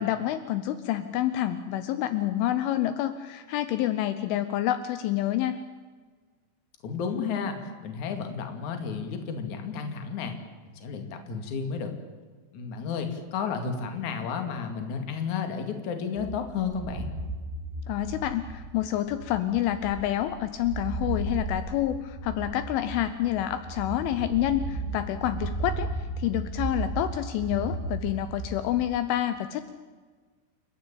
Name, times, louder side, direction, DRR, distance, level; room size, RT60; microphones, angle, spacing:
voice 1, 0.0-5.6 17.9-25.9 26.2-29.7, left 12 dB, 80° left, 11 dB, 3.2 m, -28 dB
voice 2, 6.8-10.3 10.8-11.9 12.5-17.1, left 6 dB, 45° left, 6 dB, 3.0 m, -32 dB
sound 1, 16.2-29.0, right 3 dB, 65° right, 5.0 m, -35 dB
29.5 x 14.0 x 9.0 m, 1.5 s
omnidirectional pair, 5.9 m